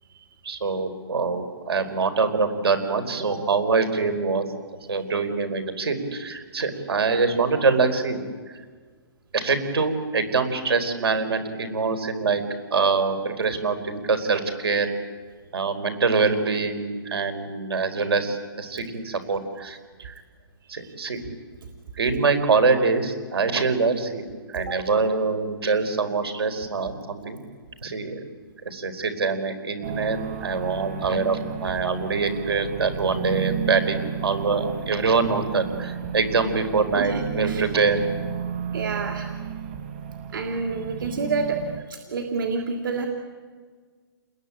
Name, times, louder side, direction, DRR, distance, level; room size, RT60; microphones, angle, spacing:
voice 1, 0.4-4.4 4.9-8.2 9.3-12.4 12.7-14.9 15.5-20.1 20.7-21.2 22.0-27.4 27.8-28.2 28.6-38.0, right 4 dB, 80° right, 9 dB, 4.9 m, -24 dB
sound 1, 29.8-41.8, right 8 dB, 25° right, 1.4 m, -33 dB
voice 2, 38.7-39.3 40.3-41.6 42.1-43.1, right 4 dB, 60° right, 3 dB, 3.1 m, -28 dB
29.5 x 21.5 x 8.9 m, 1.5 s
hypercardioid pair, 180°, 13 cm